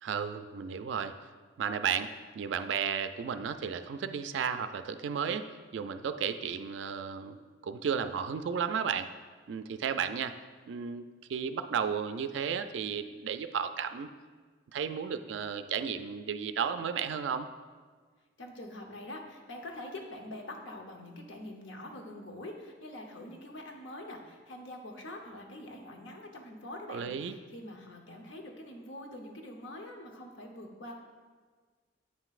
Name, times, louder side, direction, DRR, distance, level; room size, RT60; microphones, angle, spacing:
voice 1, 0.0-1.1 1.6-5.4 5.7-7.4 7.6-9.1 9.5-10.3 10.7-14.1 14.7-17.5 26.9-27.3, right 7 dB, 70° right, 10 dB, 0.3 m, -33 dB
voice 2, 18.4-31.0, left 1 dB, 80° left, 2 dB, 0.9 m, -45 dB
8.4 x 5.8 x 2.4 m, 1.5 s
head